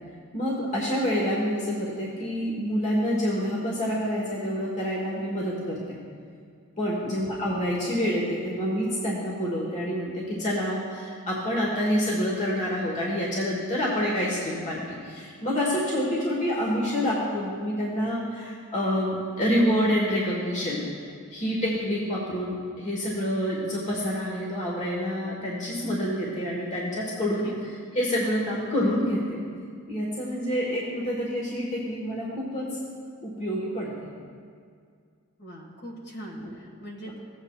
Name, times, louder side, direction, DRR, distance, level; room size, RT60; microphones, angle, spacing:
voice 1, 0.3-6.0 6.8-20.8 21.3-29.4 29.9-32.7 33.2-33.9, equal, 35° left, -4 dB, 1.4 m, -27 dB
voice 2, 27.3-27.8 35.4-37.2, equal, 50° left, -1 dB, 1.7 m, -41 dB
16.0 x 8.2 x 2.4 m, 2.2 s
head